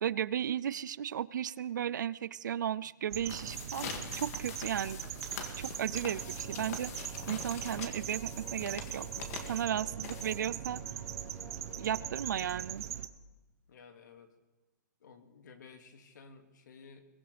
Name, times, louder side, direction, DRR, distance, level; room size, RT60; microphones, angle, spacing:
voice 1, 0.0-5.0 5.6-9.1 9.5-10.8 11.8-12.9, right 9 dB, 75° right, 20 dB, 0.5 m, -35 dB
sound 1, 3.1-10.7, left 6 dB, 50° left, 2.2 m, -45 dB
sound 2, 3.1-13.1, right 11 dB, 50° right, 0.8 m, -41 dB
sound 3, 5.3-13.1, left 4 dB, 15° left, 1.0 m, -53 dB
voice 2, 13.7-14.3 15.0-17.0, left 5 dB, 75° left, 5 dB, 2.3 m, -54 dB
22.5 x 16.5 x 3.4 m, 1.2 s
hypercardioid pair, 155°, 10 cm